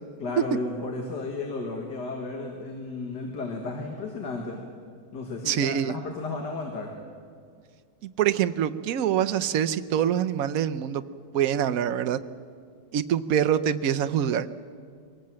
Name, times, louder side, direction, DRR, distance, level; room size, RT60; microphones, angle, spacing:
voice 1, 0.2-4.6 5.1-6.9, left 3 dB, 65° left, 2 dB, 2.3 m, -33 dB
voice 2, 5.5-5.9 8.2-11.0 11.3-12.2 12.9-14.5, right 9 dB, 65° right, 11 dB, 1.0 m, -25 dB
24.0 x 18.5 x 7.6 m, 2.1 s
omnidirectional pair, 1.9 m